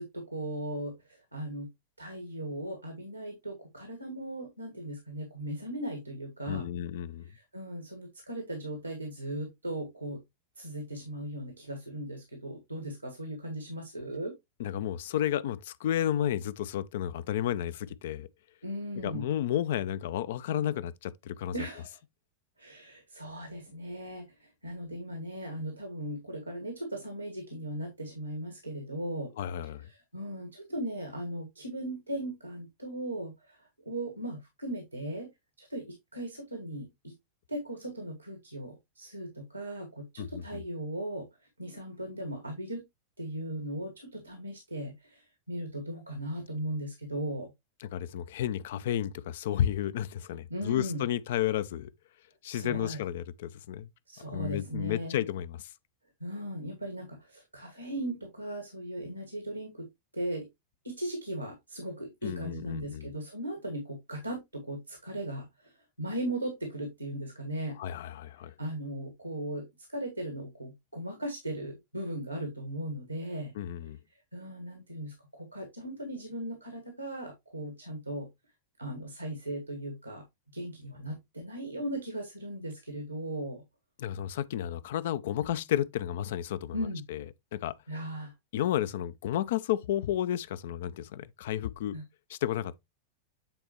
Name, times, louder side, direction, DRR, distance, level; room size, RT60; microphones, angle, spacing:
voice 1, 0.0-1.7 2.0-6.7 7.3-10.2 10.6-14.3 18.6-19.3 21.5-22.0 22.6-29.3 29.8-35.3 35.6-37.1 37.5-41.3 41.6-42.8 43.2-47.5 50.5-51.1 52.4-53.0 54.1-55.2 56.2-59.9 60.1-60.5 60.8-67.8 68.6-73.5 74.3-78.3 78.8-83.6 86.7-87.0 87.9-88.3 91.9-92.1, right 1 dB, 90° right, 1.5 m, -38 dB
voice 2, 6.5-7.2 14.6-18.3 19.0-21.5 29.4-29.9 40.2-40.6 47.8-51.9 52.4-53.9 54.3-55.7 62.2-63.1 67.8-68.5 73.6-74.0 84.0-86.8 87.1-87.2 87.5-87.8 88.5-92.0 92.3-92.8, left 11 dB, 55° left, 0.5 m, -32 dB
8.8 x 4.2 x 3.0 m
figure-of-eight pair, 90°, 0 cm